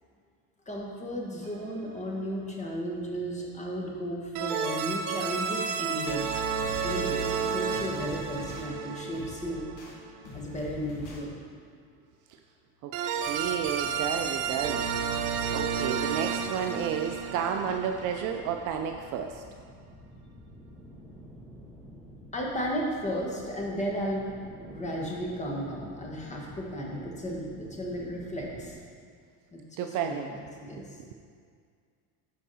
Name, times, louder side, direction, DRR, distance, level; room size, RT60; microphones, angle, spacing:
voice 1, 0.7-6.3 6.8-9.6 10.3-11.4 22.3-24.3 24.6-28.8 29.5-30.4 30.7-30.8, equal, 15° left, -2 dB, 1.3 m, -34 dB
sound 1, 1.4-1.9 4.4-10.2 12.9-18.8, right 6 dB, 90° right, 0.8 m, -32 dB
sound 2, 6.6-7.4 7.7-8.7 9.1-9.9 10.2-11.2, left 1 dB, 45° left, 1.7 m, -44 dB
voice 2, 12.8-14.8 15.5-19.4 29.8-30.3 31.0-31.1, right 8 dB, 45° right, 4 dB, 0.5 m, -31 dB
sound 3, 13.2-28.8, equal, ahead, 0.9 m, -49 dB
11.0 x 4.8 x 4.1 m, 2.1 s
supercardioid pair, 130°, 43 cm